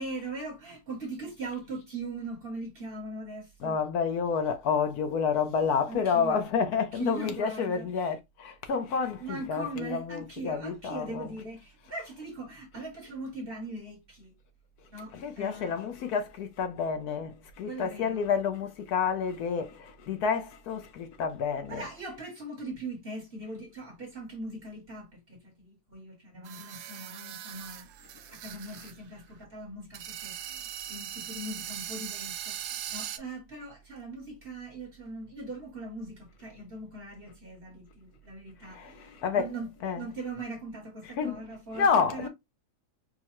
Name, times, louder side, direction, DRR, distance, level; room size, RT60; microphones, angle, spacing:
voice 1, 0.0-3.8 5.9-7.9 9.2-14.3 14.9-15.8 17.7-18.2 21.7-27.9 28.3-42.3, right 2 dB, 45° right, 0.8 m, -40 dB
voice 2, 3.6-11.3 15.1-21.9 38.6-39.5 39.8-40.0 41.2-41.4 41.7-42.3, left 6 dB, 70° left, 1.0 m, -29 dB
sound 1, 26.5-28.9 29.2-29.3 29.9-33.2, right 11 dB, 90° right, 1.3 m, -40 dB
4.7 x 2.1 x 2.9 m
omnidirectional pair, 1.9 m